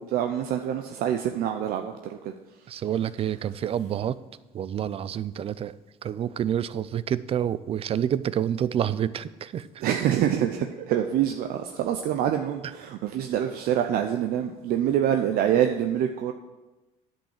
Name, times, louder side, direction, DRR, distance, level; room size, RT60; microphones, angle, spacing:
voice 1, 0.0-2.3 2.6-2.8 9.8-16.3, right 10 dB, 70° right, 5 dB, 0.7 m, -26 dB
voice 2, 2.7-4.2 4.5-5.7 6.0-9.7, right 9 dB, 40° right, 17 dB, 0.4 m, -28 dB
10.0 x 5.4 x 7.4 m, 1.1 s
cardioid pair, 115°, 16 cm